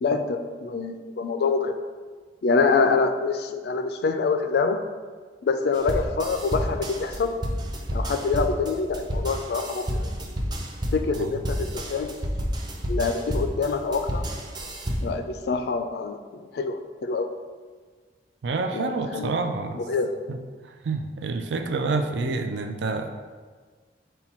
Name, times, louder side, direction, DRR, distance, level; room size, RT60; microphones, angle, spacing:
voice 1, 0.0-1.7 2.4-4.8 5.4-7.3 7.9-10.1 10.9-12.1 12.9-14.2 15.0-16.2 16.5-17.3 18.7-19.3 19.8-20.1, left 4 dB, 60° left, 7 dB, 0.3 m, -25 dB
sound 1, 5.7-15.2, equal, 25° right, 0.5 m, -30 dB
voice 2, 18.4-19.9 20.3-20.4 20.6-23.1, right 3 dB, 80° right, 6 dB, 0.4 m, -28 dB
5.6 x 2.2 x 4.3 m, 1.5 s
head